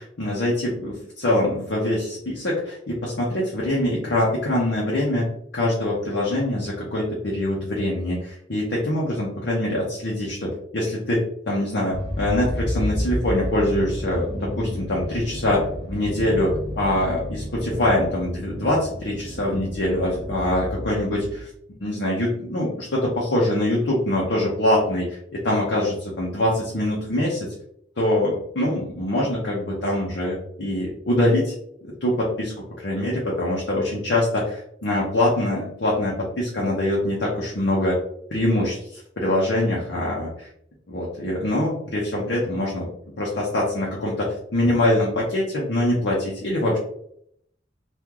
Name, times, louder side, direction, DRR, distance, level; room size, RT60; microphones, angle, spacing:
voice 1, 0.0-5.3 5.5-21.5 21.8-27.5 28.0-31.5 31.8-32.5 32.8-38.0 38.3-40.3 40.9-42.9 43.2-46.8, left 1 dB, 65° left, -4 dB, 0.8 m, -24 dB
sound 1, 11.9-21.4, equal, 40° right, 0.9 m, -31 dB
3.6 x 2.4 x 2.9 m, 0.72 s
head